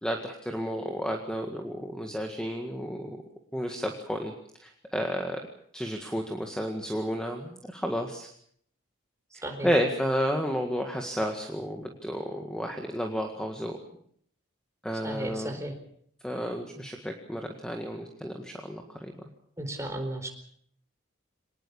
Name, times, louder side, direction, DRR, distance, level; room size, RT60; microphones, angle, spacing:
voice 1, 0.0-3.1 3.5-4.3 4.6-5.4 5.7-8.3 9.3-13.8 14.8-15.5 16.2-19.1, equal, 5° left, 3 dB, 1.8 m, -31 dB
voice 2, 15.0-15.7 19.6-20.3, right 1 dB, 15° right, 4 dB, 4.4 m, -34 dB
25.5 x 19.5 x 7.1 m, 0.63 s
head